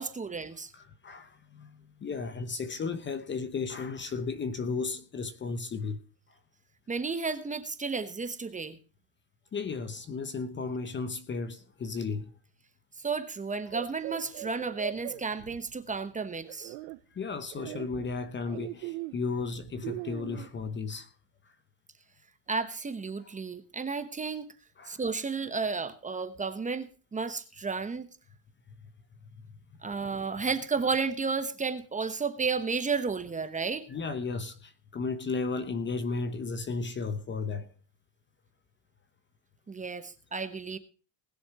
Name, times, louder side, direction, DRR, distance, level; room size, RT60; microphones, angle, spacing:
voice 1, 0.0-0.7 6.9-8.8 13.0-16.7 22.5-24.5 24.9-28.1 29.8-33.8 39.7-40.8, right 4 dB, 15° right, 1.0 m, -32 dB
voice 2, 0.7-6.0 9.5-12.3 13.7-13.8 15.4-15.5 16.5-16.6 17.1-21.1 23.2-23.3 24.8-25.1 30.5-30.6 33.9-37.7, left 4 dB, 25° left, 0.9 m, -34 dB
sound 1, 13.7-16.0 16.4-17.0 17.5-20.6, right 20 dB, 65° right, 1.0 m, -40 dB
20.0 x 7.1 x 4.8 m
cardioid pair, 130°, 49 cm